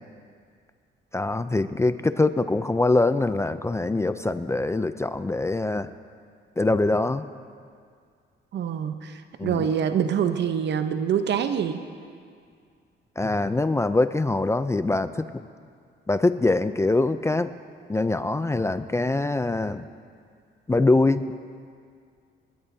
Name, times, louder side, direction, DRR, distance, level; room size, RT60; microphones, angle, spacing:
voice 1, 1.1-5.9 6.6-7.3 9.4-9.7 13.2-15.3 16.1-17.5 17.9-19.9 20.7-21.3, left 2 dB, 15° left, 11 dB, 0.4 m, -23 dB
voice 2, 8.5-11.8, right 8 dB, 60° right, 9 dB, 0.9 m, -25 dB
28.0 x 12.5 x 2.8 m, 2.2 s
cardioid pair, 90°, 20 cm